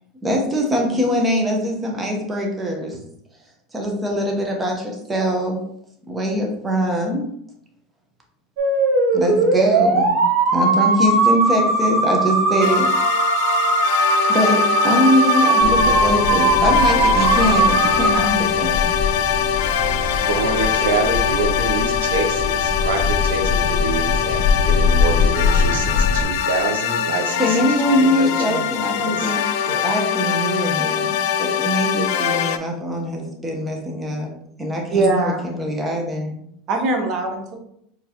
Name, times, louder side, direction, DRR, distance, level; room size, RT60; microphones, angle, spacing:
voice 1, 0.2-3.0 3.7-5.6 6.1-7.3 9.1-10.1 10.5-12.9 14.3-18.9 27.4-29.4 29.8-34.3 34.6-36.4, equal, 15° right, 1 dB, 1.0 m, -22 dB
sound 1, 8.6-18.2, right 3 dB, 70° right, 1.0 m, -18 dB
sound 2, 12.6-32.6, left 9 dB, 70° left, 0.3 m, -22 dB
sound 3, 15.6-26.2, left 4 dB, 15° left, 1.4 m, -23 dB
voice 2, 20.2-29.3 29.6-29.8, right 4 dB, 90° right, 3 dB, 0.7 m, -26 dB
voice 3, 34.9-35.5 36.7-37.5, right 2 dB, 45° right, 3 dB, 1.0 m, -21 dB
4.7 x 3.1 x 2.9 m, 0.72 s
supercardioid pair, 125°, 0 cm